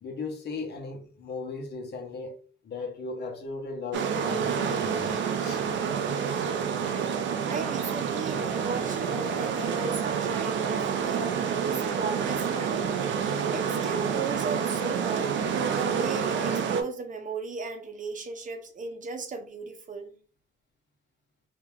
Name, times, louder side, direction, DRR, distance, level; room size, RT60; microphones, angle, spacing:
voice 1, 0.0-2.4 2.6-5.1 5.4-5.6, left 4 dB, 55° left, 1.1 m, -37 dB
sound 1, 3.9-16.8, right 7 dB, 70° right, 0.6 m, -28 dB
voice 2, 7.5-11.4 11.7-12.8 13.5-15.4 15.7-20.2, right 4 dB, 40° right, 0.9 m, -36 dB
2.8 x 2.8 x 3.5 m
cardioid pair, 90°, 20 cm